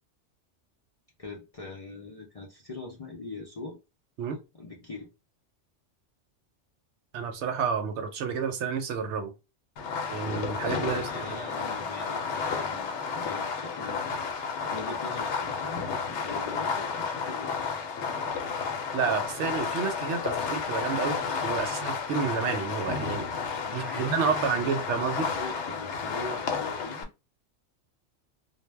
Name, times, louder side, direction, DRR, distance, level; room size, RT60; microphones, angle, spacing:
voice 1, 1.2-3.8 4.5-5.1 10.9-14.1 14.4-17.5 23.7-27.1, left 2 dB, 50° left, 0.4 m, -42 dB
voice 2, 7.1-9.3 10.1-11.4 18.9-21.2 21.4-23.3 23.7-25.3, right 6 dB, 75° right, 0.9 m, -30 dB
Fireworks, 9.8-27.0, left 5 dB, 70° left, 0.8 m, -32 dB
2.2 x 2.0 x 3.2 m
omnidirectional pair, 1.2 m